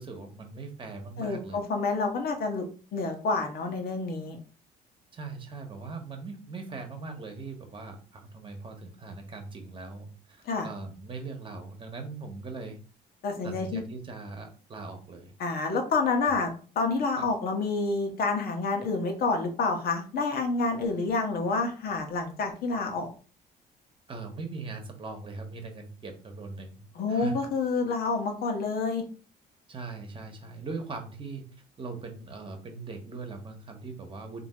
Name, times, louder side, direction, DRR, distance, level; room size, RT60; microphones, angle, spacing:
voice 1, 0.0-1.6 5.1-12.8 13.4-15.3 17.2-17.3 24.1-26.8 27.1-27.4 29.7-31.4 31.8-34.4, right 3 dB, 30° right, 4 dB, 1.2 m, -40 dB
voice 2, 1.2-2.6 2.9-4.4 10.4-10.7 13.2-13.8 15.4-23.1 26.9-29.0, left 3 dB, 65° left, 4 dB, 1.2 m, -28 dB
3.5 x 2.9 x 4.3 m, 0.38 s
cardioid pair, 110°, 17 cm